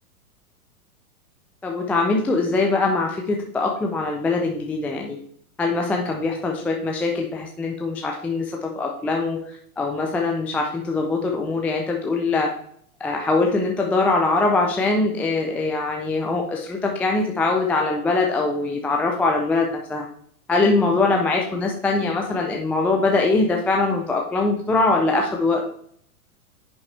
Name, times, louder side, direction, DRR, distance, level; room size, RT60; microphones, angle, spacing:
voice 1, 1.6-5.2 5.6-12.5 13.0-20.1 20.5-25.6, left 3 dB, 5° left, 1 dB, 0.4 m, -22 dB
9.6 x 7.0 x 3.2 m, 0.64 s
hypercardioid pair, 115°, 45 cm